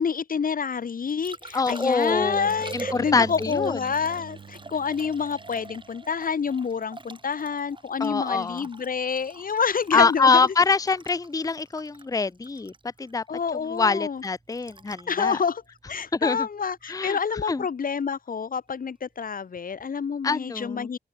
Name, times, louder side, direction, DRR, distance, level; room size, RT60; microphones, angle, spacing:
voice 1, 0.0-10.5 13.3-14.2 15.1-15.6 15.9-21.0, left 6 dB, 55° left, 0.7 m, -28 dB
Liquid, 0.8-16.9 19.7-19.9, right 3 dB, 30° right, 6.1 m, -44 dB
voice 2, 1.5-3.8 8.0-8.6 9.9-12.7 13.0-13.2 13.7-15.4 16.1-16.5 16.9-17.2 17.5-17.6 20.2-20.9, left 4 dB, 20° left, 0.6 m, -24 dB
sound 1, 2.1-6.7 10.0-10.5, right 6 dB, 60° right, 1.4 m, -45 dB
open air
wide cardioid pair, 150°, 18 cm